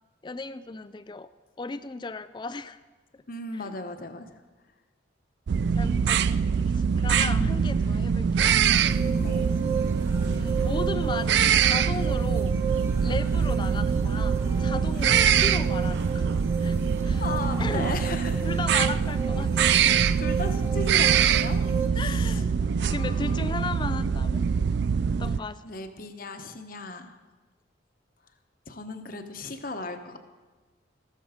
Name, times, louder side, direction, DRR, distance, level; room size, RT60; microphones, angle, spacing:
voice 1, 0.2-1.3 1.6-2.8 3.1-3.2 3.7-3.8 5.7-6.4 6.7-8.6 8.9-9.4 10.3-12.6 13.0-17.3 17.6-17.9 18.4-19.8 22.0-22.5 22.9-24.5 25.2-25.6, left 4 dB, 25° left, 14 dB, 0.3 m, -36 dB
voice 2, 3.3-4.4 7.1-7.5 7.8-8.0 9.2-9.5 15.0-15.1 17.2-18.5 19.6-19.9 20.2-21.6 21.9-23.4 25.6-27.1 28.7-30.2, left 2 dB, 45° left, 6 dB, 1.0 m, -36 dB
sound 1, 5.5-25.4, right 6 dB, 60° right, 0.3 m, -24 dB
sound 2, 8.9-21.9, right 7 dB, 10° right, 0.7 m, -35 dB
14.0 x 13.0 x 5.0 m, 1.3 s
head